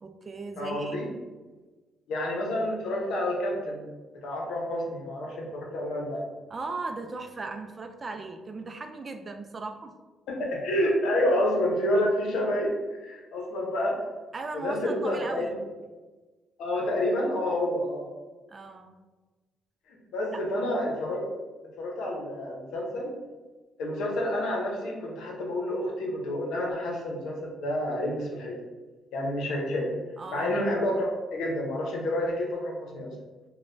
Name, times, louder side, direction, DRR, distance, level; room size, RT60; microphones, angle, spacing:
voice 1, 0.0-1.0 6.5-9.9 14.3-15.6 18.5-19.0 20.3-20.4 30.2-30.6, right 3 dB, 35° right, 6 dB, 0.3 m, -37 dB
voice 2, 0.6-1.1 2.1-3.9 4.1-6.2 10.3-14.0 14.5-15.5 16.6-18.1 19.9-21.2 21.8-23.1 23.8-28.6 29.1-29.9 30.3-33.1, left 1 dB, 85° left, -1 dB, 0.7 m, -29 dB
4.1 x 2.1 x 2.5 m, 1.3 s
cardioid pair, 90°, 0 cm